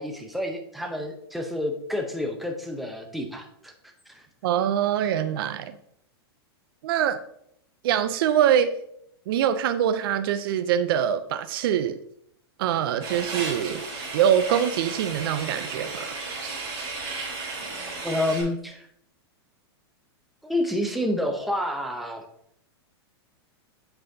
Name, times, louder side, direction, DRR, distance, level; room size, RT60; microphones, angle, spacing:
voice 1, 0.0-3.7 4.1-4.2 18.0-18.9 20.4-22.2, left 1 dB, ahead, 3 dB, 0.7 m, -29 dB
voice 2, 4.4-5.7 6.8-7.2 7.8-8.7 9.3-12.0 12.6-13.8 14.1-16.1, right 9 dB, 60° right, 10 dB, 0.5 m, -24 dB
sound 1, 13.0-18.4, right 3 dB, 35° right, 2.8 m, -34 dB
7.8 x 5.5 x 2.7 m, 0.71 s
supercardioid pair, 150°, 14 cm